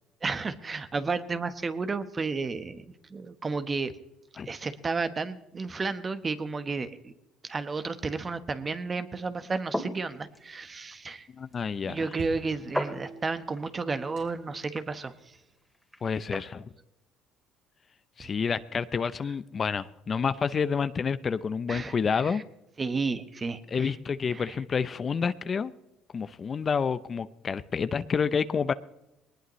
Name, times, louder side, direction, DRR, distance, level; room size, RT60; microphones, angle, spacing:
voice 1, 0.2-2.8 3.1-3.9 4.4-7.1 7.4-11.3 11.8-15.1 18.2-18.3 21.7-22.4 22.8-23.9 24.3-24.6, right 4 dB, 30° right, 11 dB, 1.2 m, -32 dB
sound 1, 9.4-16.5, equal, ahead, 2.4 m, -40 dB
sound 2, 10.2-15.5, right 3 dB, 75° right, 4.9 m, -47 dB
voice 2, 11.3-12.1 16.0-16.7 18.2-22.4 23.7-25.7 26.1-28.7, left 6 dB, 35° left, 14 dB, 0.6 m, -29 dB
21.0 x 19.5 x 3.2 m, 0.92 s
supercardioid pair, 85°, 0 cm